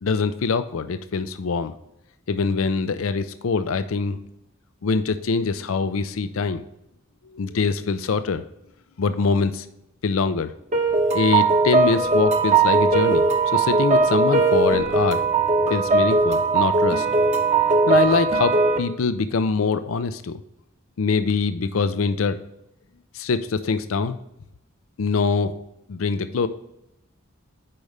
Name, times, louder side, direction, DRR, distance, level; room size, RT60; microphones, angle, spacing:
voice 1, 0.0-1.7 2.3-4.2 4.8-6.6 7.3-8.4 9.0-9.7 10.0-10.5 11.1-15.2 15.7-17.2 17.9-20.4 21.0-22.4 23.1-24.2 25.0-25.6 25.9-26.5, left 4 dB, 75° left, 11 dB, 0.5 m, -24 dB
sound 1, 10.7-18.8, right 3 dB, 35° right, 1.0 m, -19 dB
8.5 x 5.3 x 3.3 m, 0.84 s
head